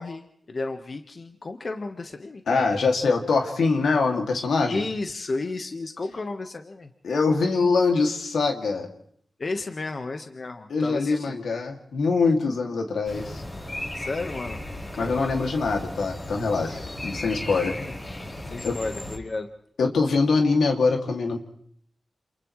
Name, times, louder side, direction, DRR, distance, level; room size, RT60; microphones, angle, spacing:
voice 1, 0.0-2.6 4.7-6.9 9.4-11.4 13.9-14.7 15.0-15.3 17.5-18.0 18.5-19.5, left 3 dB, 50° left, 5 dB, 1.4 m, -33 dB
voice 2, 2.5-4.8 7.0-8.9 10.7-13.4 15.0-17.8 18.6-18.8 19.8-21.4, left 4 dB, 90° left, 2 dB, 2.6 m, -23 dB
sound 1, 13.0-19.2, left 1 dB, 30° left, 5.7 m, -36 dB
28.5 x 27.5 x 3.3 m, 0.66 s
cardioid pair, 70°, 0 cm